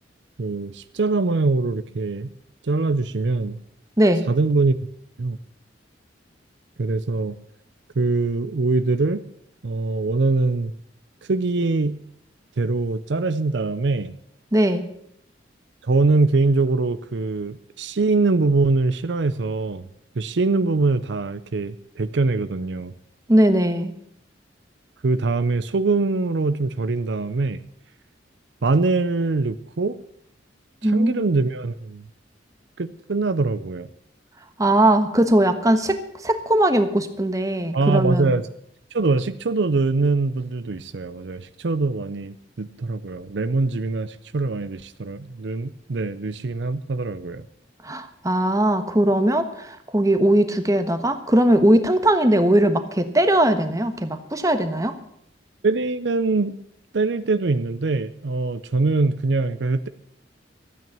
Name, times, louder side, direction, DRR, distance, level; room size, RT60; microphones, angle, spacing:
voice 1, 0.4-2.3 2.6-3.6 4.3-4.8 5.2-5.4 6.8-7.4 8.0-9.2 9.6-10.7 11.3-12.0 12.6-14.1 15.8-19.8 20.2-22.9 25.0-27.6 28.6-30.0 30.8-32.1 32.8-33.9 37.7-38.4 38.9-47.4 55.6-56.6 56.9-59.9, right 3 dB, 70° right, 13 dB, 0.6 m, -23 dB
voice 2, 14.5-14.8 23.3-23.9 30.8-31.2 34.6-36.0 36.2-38.3 47.8-54.9, right 1 dB, 20° right, 8 dB, 1.2 m, -19 dB
13.5 x 9.3 x 8.8 m, 0.72 s
head